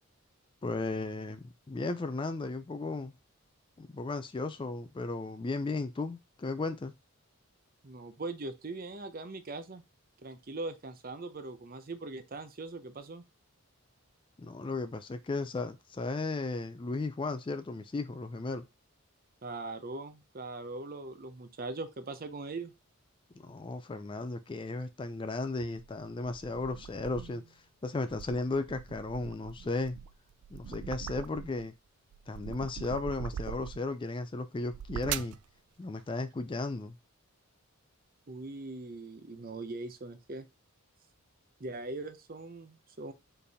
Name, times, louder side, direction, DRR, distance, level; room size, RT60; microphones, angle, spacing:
voice 1, 0.6-3.1 3.8-6.9 14.4-18.7 23.4-30.0 30.5-31.7 32.3-35.4 35.8-37.0, left 3 dB, 20° left, 0.3 m, -35 dB
voice 2, 7.8-9.8 10.2-13.2 19.4-22.7 38.3-40.5 41.6-43.1, right 2 dB, 40° right, 0.6 m, -41 dB
sound 1, 25.6-27.5 28.0-31.7 32.1-34.0 34.6-35.4, right 9 dB, 85° right, 0.4 m, -42 dB
4.5 x 3.4 x 3.4 m
head